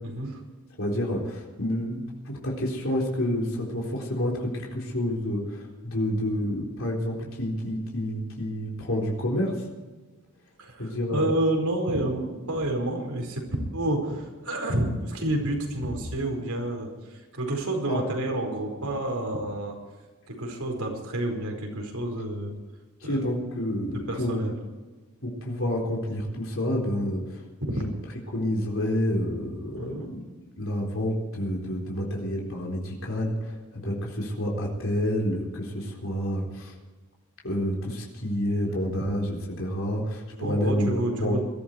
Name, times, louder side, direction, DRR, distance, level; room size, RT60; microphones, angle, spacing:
voice 1, 0.0-0.4 10.6-16.9 17.3-19.8 20.3-22.5 23.0-23.2 24.1-24.5 29.7-30.1 40.4-41.4, right 1 dB, 80° right, 2 dB, 4.8 m, -29 dB
voice 2, 0.8-9.6 10.8-11.3 17.9-18.0 23.0-24.4 25.2-27.4 27.7-27.9 28.3-30.2 30.6-36.7 37.4-41.4, equal, 60° left, -1 dB, 4.0 m, -29 dB
21.5 x 13.5 x 4.6 m, 1.3 s
head